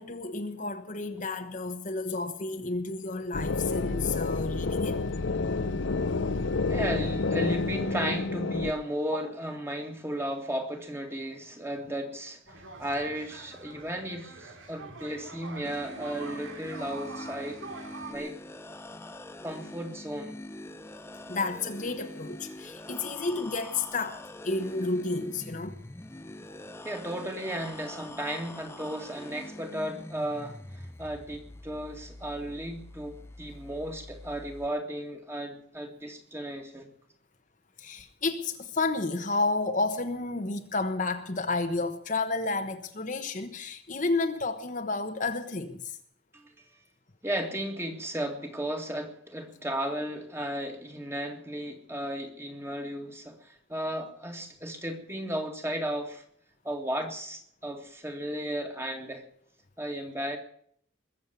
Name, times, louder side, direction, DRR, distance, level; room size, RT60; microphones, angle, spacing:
voice 1, 0.0-5.0 9.1-9.2 21.3-25.8 37.8-46.0, left 3 dB, 40° left, 1.2 m, -31 dB
sound 1, 3.3-8.7, left 3 dB, 75° left, 0.7 m, -29 dB
voice 2, 6.7-17.6 18.1-18.3 19.4-20.4 26.8-36.9 46.3-46.7 47.2-56.2 56.6-59.2 59.8-60.4, right 1 dB, 10° right, 2.1 m, -34 dB
sound 2, 12.5-18.2, right 3 dB, 85° right, 2.6 m, -45 dB
sound 3, 15.6-34.7, left 1 dB, 15° left, 0.7 m, -44 dB
21.0 x 7.6 x 8.2 m
head